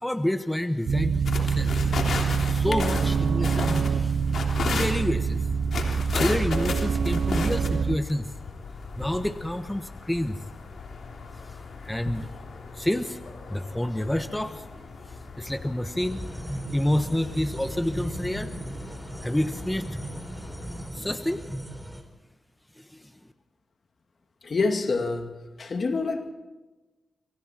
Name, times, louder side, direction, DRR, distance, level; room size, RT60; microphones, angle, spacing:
voice 1, 0.0-1.9 2.5-5.5 6.1-8.3 9.0-10.4 11.5-11.6 11.8-12.3 12.7-13.2 13.5-16.2 16.7-18.5 19.2-20.0 20.9-21.4 22.8-23.1, left 1 dB, 10° left, 1.3 m, -29 dB
sound 1, 0.9-8.0, right 6 dB, 75° right, 0.7 m, -25 dB
Walking on snow in OK - far away dogs, 1.2-20.9, left 4 dB, 80° left, 3.3 m, -36 dB
sound 2, 16.0-22.0, right 1 dB, 5° right, 4.0 m, -37 dB
voice 2, 24.4-25.3 25.6-26.3, left 3 dB, 60° left, 2.3 m, -26 dB
27.5 x 24.5 x 4.5 m
cardioid pair, 55°, 0 cm